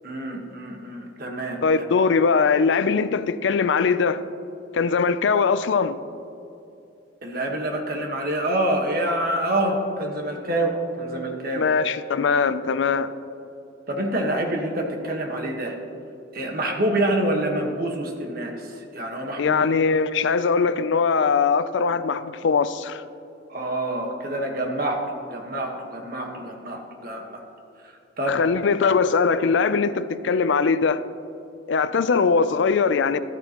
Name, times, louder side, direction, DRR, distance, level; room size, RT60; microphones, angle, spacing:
voice 1, 0.0-1.6 7.2-11.7 13.9-15.8 16.3-19.6 23.5-27.4 27.8-28.5, right 1 dB, 50° right, 1.3 m, -27 dB
voice 2, 1.6-4.2 4.7-6.0 11.6-13.1 19.4-23.0 28.3-31.0 31.7-33.2, left 5 dB, 70° left, 0.4 m, -21 dB
13.5 x 13.0 x 3.0 m
head